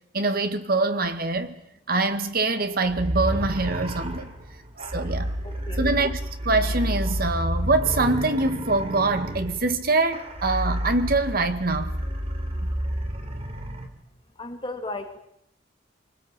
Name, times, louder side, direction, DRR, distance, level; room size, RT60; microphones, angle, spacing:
voice 1, 0.1-1.5 1.9-4.3 4.8-5.3 5.7-6.2 6.4-12.0, right 3 dB, 55° right, 2.0 m, -24 dB
sound 1, 2.8-13.9, equal, 35° right, 3.2 m, -30 dB
voice 2, 5.4-5.8 14.4-15.2, left 2 dB, 25° left, 2.0 m, -35 dB
24.5 x 20.0 x 9.1 m
head